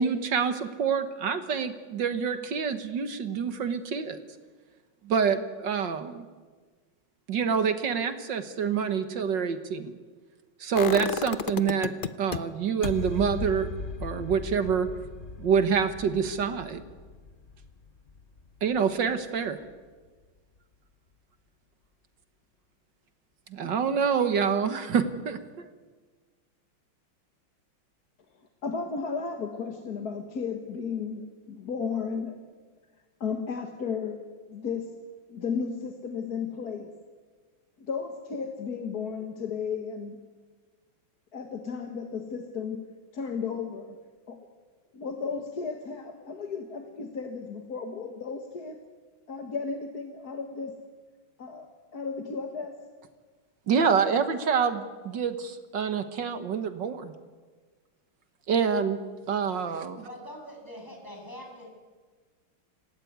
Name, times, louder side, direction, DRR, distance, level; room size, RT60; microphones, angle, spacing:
voice 1, 0.0-4.2 5.0-6.3 7.3-9.9 10.6-13.7 14.0-14.9 15.4-16.8 18.6-19.6 23.5-25.7 53.7-57.1 58.5-59.0 59.3-60.1, right 6 dB, 60° right, 10 dB, 2.0 m, -27 dB
sound 1, 10.8-12.4 12.8-18.7 19.0-19.1, left 5 dB, 90° left, 0.4 m, -35 dB
voice 2, 28.6-32.4 33.2-34.2 34.5-35.0 35.3-36.9 37.8-40.2 41.3-42.9 43.1-44.0 44.3-44.4 44.9-48.8 49.3-50.8 51.4-51.7 51.9-52.8, left 5 dB, 50° left, 5 dB, 2.0 m, -34 dB
voice 3, 60.0-61.7, equal, 10° left, 0 dB, 6.8 m, -43 dB
26.0 x 17.5 x 9.6 m, 1.4 s
omnidirectional pair, 2.2 m